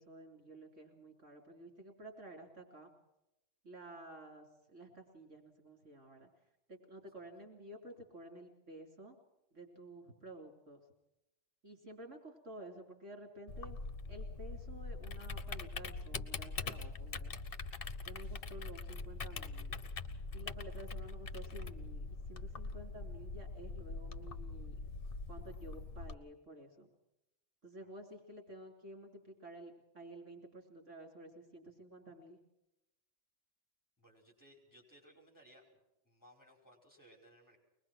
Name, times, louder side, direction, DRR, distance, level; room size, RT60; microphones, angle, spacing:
voice 1, 0.0-2.9 3.6-6.3 6.7-9.2 9.5-10.8 11.6-13.8 14.1-17.3 18.0-19.8 20.3-24.8 25.3-26.9 27.6-32.4, right 1 dB, 75° right, 2 dB, 3.7 m, -52 dB
Typing, 13.5-26.1, left 3 dB, 50° left, 1.3 m, -43 dB
voice 2, 34.0-35.8 36.0-37.6, equal, 15° left, 1 dB, 5.4 m, -62 dB
23.5 x 20.5 x 6.1 m, 0.89 s
omnidirectional pair, 1.3 m